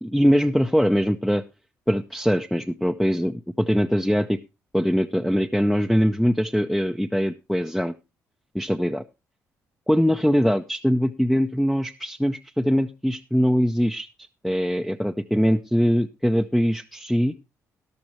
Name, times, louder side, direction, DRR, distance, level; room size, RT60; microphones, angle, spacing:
voice 1, 0.0-1.4 1.9-4.4 4.7-7.9 8.5-9.0 9.9-17.3, equal, ahead, 5 dB, 0.6 m, -22 dB
13.5 x 11.5 x 3.1 m, 0.25 s
cardioid pair, 75°, 6 cm